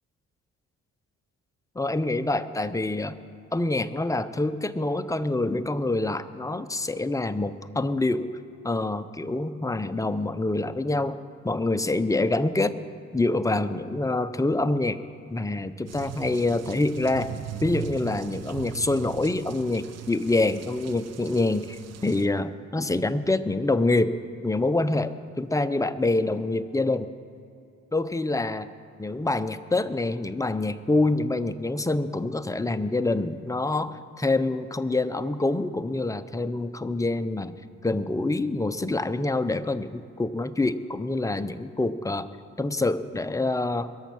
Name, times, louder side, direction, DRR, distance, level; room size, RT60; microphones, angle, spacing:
voice 1, 1.8-3.2 3.5-8.3 8.6-11.2 11.4-12.8 13.1-15.0 15.3-17.3 17.6-24.1 24.4-27.1 27.9-28.7 29.0-37.5 37.8-42.3 42.6-43.9, left 2 dB, 10° left, 10 dB, 0.6 m, -26 dB
sound 1, 15.9-22.3, right 9 dB, 55° right, 0.8 m, -39 dB
21.5 x 7.3 x 6.1 m, 2.6 s
cardioid pair, 90°, 30 cm